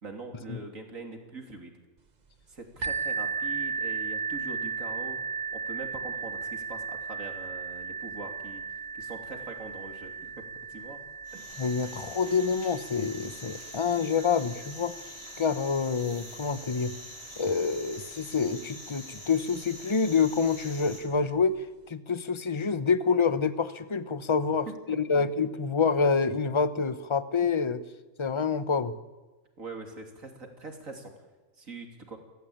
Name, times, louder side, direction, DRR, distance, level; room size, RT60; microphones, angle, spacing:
voice 1, 0.0-1.7 2.5-5.2 5.5-8.6 8.9-10.4 10.7-11.0 11.3-11.5 24.7-25.2 29.6-31.1 31.6-32.2, right 3 dB, 85° right, 3 dB, 3.7 m, -43 dB
sound 1, 2.8-18.4 19.1-19.2 19.8-19.9, right 6 dB, 35° right, 1.1 m, -37 dB
sound 2, 11.2-21.0, equal, 50° left, 6.7 m, -45 dB
voice 2, 11.6-15.0 15.4-16.9 17.4-27.8 28.2-29.0, left 5 dB, 25° left, 13 dB, 0.9 m, -27 dB
30.0 x 14.0 x 8.9 m, 1.2 s
omnidirectional pair, 1.4 m